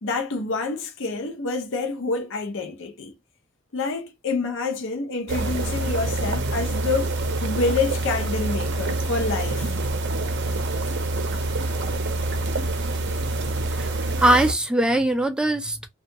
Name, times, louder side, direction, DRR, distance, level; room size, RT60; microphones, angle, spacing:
voice 1, 0.0-3.1 3.7-7.2 7.4-9.7, left 3 dB, 60° left, 0.6 m, -27 dB
sound 1, 5.3-14.5, right 2 dB, 55° right, 0.6 m, -26 dB
voice 2, 14.2-15.9, right 1 dB, 5° right, 0.4 m, -21 dB
2.7 x 2.3 x 2.7 m
head